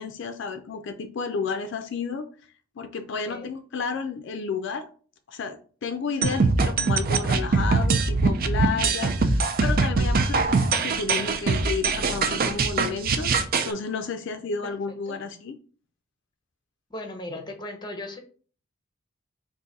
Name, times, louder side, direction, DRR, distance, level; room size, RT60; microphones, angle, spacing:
voice 1, 0.0-2.3 2.8-4.9 5.3-13.3 13.6-15.6, left 5 dB, 60° left, 6 dB, 0.4 m, -31 dB
sound 1, 6.2-13.7, right 4 dB, 45° right, 0.4 m, -23 dB
voice 2, 16.9-18.2, left 1 dB, 20° left, 5 dB, 0.7 m, -37 dB
3.8 x 2.6 x 4.0 m, 0.41 s
head